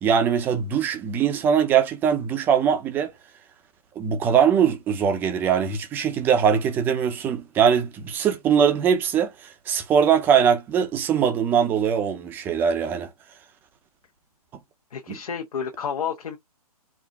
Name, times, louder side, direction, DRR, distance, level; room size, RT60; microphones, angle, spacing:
voice 1, 0.0-3.1 4.0-13.1 15.1-15.2, right 7 dB, 10° right, 0.6 m, -21 dB
voice 2, 14.9-16.4, left 7 dB, 70° left, 1.3 m, -30 dB
4.7 x 2.6 x 3.5 m
hypercardioid pair, 160°, 20 cm